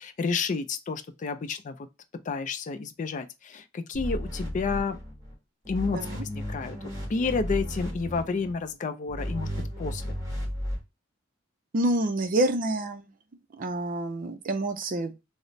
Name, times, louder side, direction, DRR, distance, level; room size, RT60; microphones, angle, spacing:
voice 1, 0.0-1.9 2.3-5.0 5.7-6.8 7.1-9.5 9.8-10.2, left 4 dB, 40° left, 0.4 m, -30 dB
sound 1, 3.9-5.3 5.6-8.5 9.1-10.8, equal, 15° right, 1.4 m, -34 dB
voice 2, 5.9-6.2 11.7-13.1 13.6-15.1, right 1 dB, 45° right, 0.5 m, -27 dB
4.0 x 2.0 x 3.0 m
head